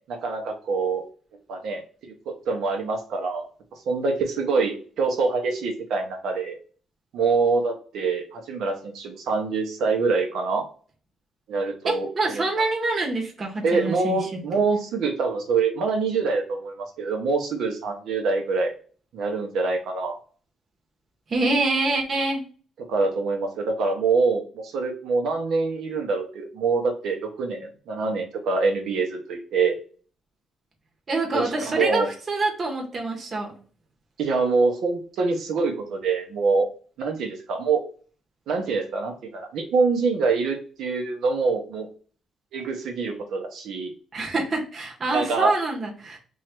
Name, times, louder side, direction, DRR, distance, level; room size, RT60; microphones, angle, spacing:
voice 1, 0.1-1.0 1.5-3.5 3.9-6.6 7.1-10.6 11.5-12.6 13.6-18.7 19.1-20.2 22.9-29.8 31.3-32.1 34.2-36.7 37.0-37.8 38.5-41.9 42.5-43.9 45.1-45.5, right 4 dB, 70° right, 2 dB, 0.7 m, -25 dB
voice 2, 11.8-14.4 21.3-22.4 31.1-33.5 44.1-46.2, right 2 dB, 30° right, 0 dB, 0.9 m, -26 dB
3.1 x 2.3 x 4.3 m, 0.41 s
cardioid pair, 145°, 0 cm